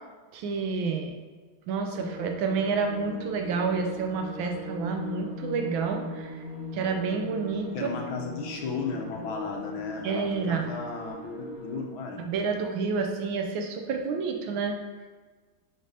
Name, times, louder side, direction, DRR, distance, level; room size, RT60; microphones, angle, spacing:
voice 1, 0.3-1.1 1.7-6.4 6.7-7.9 10.0-10.7 12.2-14.8, right 5 dB, 75° right, 4 dB, 1.4 m, -29 dB
sound 1, 1.9-11.8, equal, 55° right, 0.5 m, -40 dB
voice 2, 7.7-12.2, left 4 dB, 75° left, 0 dB, 1.6 m, -34 dB
6.6 x 5.3 x 2.8 m, 1.4 s
omnidirectional pair, 2.3 m